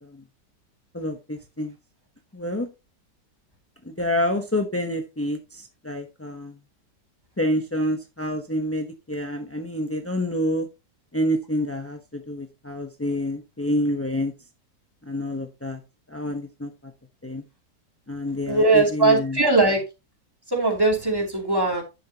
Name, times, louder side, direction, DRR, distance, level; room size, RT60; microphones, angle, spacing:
voice 1, 0.9-1.7 2.3-2.7 3.8-6.5 7.4-10.7 11.1-14.3 15.1-15.8 16.1-16.7 17.2-17.4 18.1-19.4, left 1 dB, 15° left, 4 dB, 0.5 m, -27 dB
voice 2, 18.5-19.8 20.5-21.8, right 3 dB, 10° right, 0 dB, 2.8 m, -20 dB
11.0 x 7.1 x 2.8 m, 0.26 s
omnidirectional pair, 1.9 m